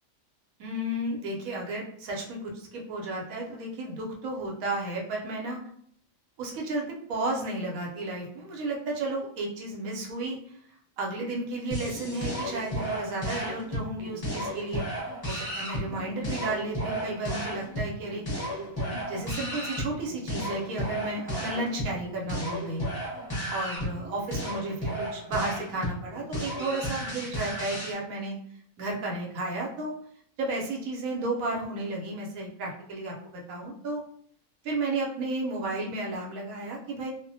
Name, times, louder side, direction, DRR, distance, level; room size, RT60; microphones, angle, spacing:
voice 1, 0.6-5.6 6.4-10.4 11.0-14.9 15.3-18.2 18.8-22.8 23.5-28.4 28.8-29.9 30.4-34.0 34.6-37.1, right 2 dB, 85° right, -1 dB, 1.1 m, -33 dB
sound 1, 11.7-27.9, equal, 20° left, 0.7 m, -34 dB
2.4 x 2.1 x 2.6 m, 0.63 s
omnidirectional pair, 1.4 m